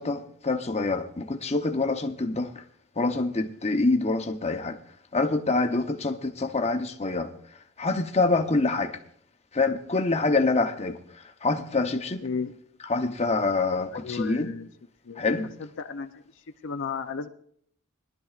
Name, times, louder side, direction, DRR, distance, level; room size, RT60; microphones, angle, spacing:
voice 1, 0.0-2.6 3.0-4.8 5.1-7.3 7.8-8.9 9.5-11.0 11.4-12.2 12.9-14.5 15.2-15.5, left 3 dB, 30° left, 0.8 m, -26 dB
voice 2, 12.2-12.6 13.9-14.7 15.0-15.3 15.6-17.3, left 5 dB, 60° left, 0.6 m, -34 dB
21.5 x 12.0 x 2.4 m
head